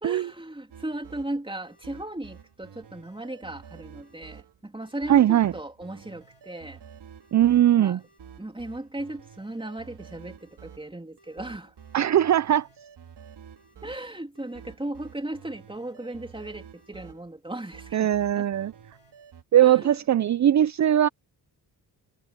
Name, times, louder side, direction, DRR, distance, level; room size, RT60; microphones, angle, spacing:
voice 1, 0.0-6.8 7.6-8.0 8.4-11.7 13.8-18.5 19.6-20.0, right 1 dB, 10° right, 3.1 m, -37 dB
sound 1, 0.7-19.4, right 7 dB, 75° right, 4.6 m, -50 dB
voice 2, 5.1-5.5 7.3-8.0 11.9-12.7 17.9-18.7 19.5-21.1, right 11 dB, 45° right, 0.5 m, -20 dB
cardioid pair, 75°, 41 cm